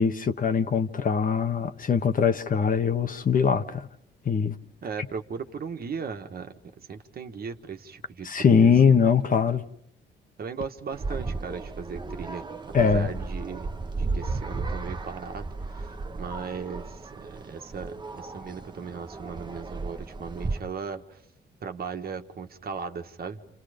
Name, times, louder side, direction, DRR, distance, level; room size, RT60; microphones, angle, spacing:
voice 1, 0.0-3.9 4.2-4.5 8.2-9.6 12.7-13.1, left 6 dB, 45° left, 1.3 m, -22 dB
voice 2, 4.8-9.0 10.4-12.4 12.8-13.7 14.0-21.2 21.6-23.4, right 6 dB, 50° right, 1.7 m, -37 dB
sound 1, 10.9-20.6, right 3 dB, 20° right, 1.1 m, -34 dB
29.0 x 28.5 x 5.2 m
cardioid pair, 90°, 20 cm